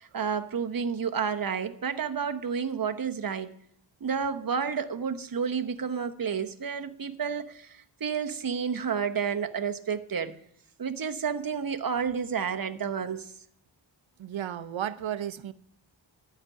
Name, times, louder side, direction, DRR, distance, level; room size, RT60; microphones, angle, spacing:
voice 1, 0.0-3.5 4.0-10.4 10.8-13.3, right 6 dB, 50° right, 0.9 m, -30 dB
voice 2, 14.2-15.5, right 10 dB, 85° right, 0.7 m, -33 dB
12.0 x 6.0 x 8.8 m
wide cardioid pair, 90°, 46 cm